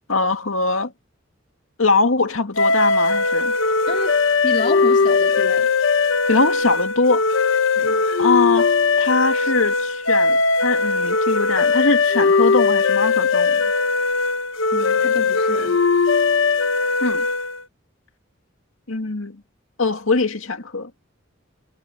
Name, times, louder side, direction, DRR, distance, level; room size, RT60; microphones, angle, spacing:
voice 1, 0.1-0.9 1.8-3.5 6.3-7.2 8.2-8.7 9.0-13.6 17.0-17.3 18.9-19.4 19.8-20.9, left 3 dB, 90° left, 2.2 m, -22 dB
sound 1, 2.6-17.6, left 4 dB, 75° left, 1.0 m, -19 dB
voice 2, 3.9-5.7 7.7-8.0 14.7-15.8, left 2 dB, 40° left, 2.7 m, -30 dB
head